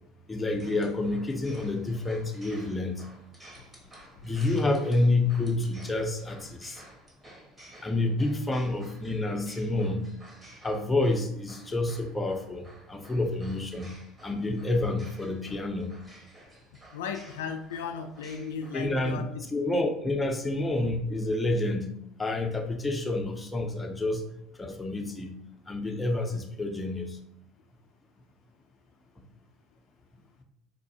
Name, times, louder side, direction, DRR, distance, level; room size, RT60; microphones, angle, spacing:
voice 1, 0.3-2.9 4.2-6.8 7.8-10.0 10.6-13.9 14.2-15.9 18.7-19.2 19.5-21.9 22.2-24.2 24.6-25.4 25.7-27.2, left 2 dB, 15° left, 3 dB, 0.6 m, -28 dB
sound 1, 0.6-19.1, right 1 dB, 20° right, 1.1 m, -53 dB
voice 2, 16.9-19.4, left 5 dB, 85° left, 5 dB, 0.3 m, -36 dB
4.7 x 2.4 x 2.8 m, 0.74 s
hypercardioid pair, 75°, 0 cm